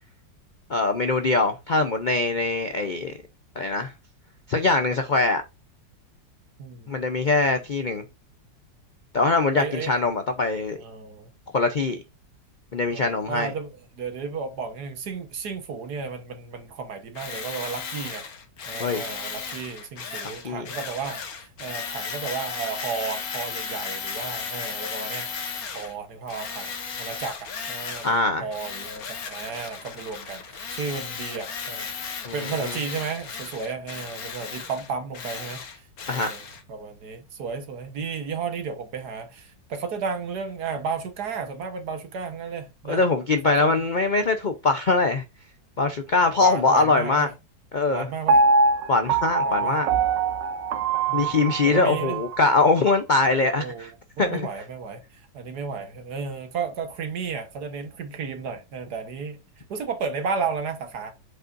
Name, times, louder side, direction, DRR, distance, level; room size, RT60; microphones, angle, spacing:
voice 1, 0.7-3.1 3.6-3.9 4.5-5.4 6.9-8.0 9.1-10.8 11.5-12.0 12.7-13.5 18.8-19.0 20.4-20.6 28.0-28.4 32.3-32.7 36.1-36.3 42.9-45.2 45.8-47.3 47.7-48.1 48.9-49.9 51.1-53.9 54.2-54.5, left 3 dB, 90° left, 0.4 m, -22 dB
voice 2, 6.6-6.9 9.5-9.9 10.8-11.3 12.9-18.3 18.7-28.1 28.4-43.0 43.4-43.8 46.4-47.3 47.9-48.4 49.4-49.8 51.1-52.2 53.6-53.9 54.2-59.4 59.7-61.1, right 5 dB, 65° right, 1.7 m, -33 dB
Tools, 17.1-25.9 26.3-28.2 28.5-36.6, left 6 dB, 60° left, 1.5 m, -35 dB
Piano, 48.3-52.4 52.9-53.0, right 3 dB, 85° right, 1.4 m, -23 dB
8.3 x 5.3 x 2.5 m
omnidirectional pair, 1.9 m